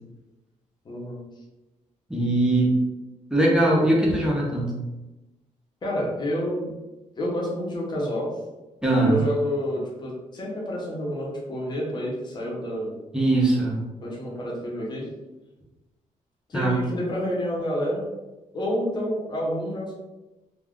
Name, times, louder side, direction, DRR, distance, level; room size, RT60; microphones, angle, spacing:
voice 1, 0.8-1.2 5.8-6.7 7.2-8.3 9.0-12.9 14.0-15.1 16.5-18.1 18.5-20.0, equal, 35° left, -4 dB, 0.8 m, -29 dB
voice 2, 2.1-2.8 3.3-4.7 8.8-9.2 13.1-13.8 16.5-16.7, right 1 dB, 5° right, -5 dB, 0.6 m, -21 dB
2.4 x 2.3 x 3.5 m, 1.1 s
wide cardioid pair, 170°, 14 cm